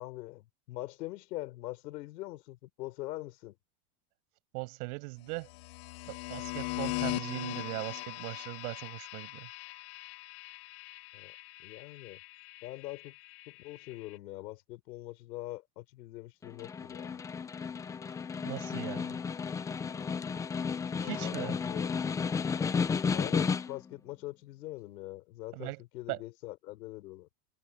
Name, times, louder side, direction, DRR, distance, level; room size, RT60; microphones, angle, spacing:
voice 1, 0.0-3.5 11.1-12.2 12.6-13.1 13.5-17.2 21.0-21.9 23.1-27.3, left 17 dB, 75° left, 4.8 m, -43 dB
voice 2, 4.5-5.5 6.1-9.5 18.4-19.2 21.0-21.6 25.5-25.8 26.1-26.2, right 25 dB, 65° right, 5.9 m, -39 dB
sound 1, 5.4-14.2, left 26 dB, 55° left, 1.3 m, -40 dB
Snare drum, 16.4-23.9, left 5 dB, 10° left, 0.3 m, -33 dB
supercardioid pair, 125°, 49 cm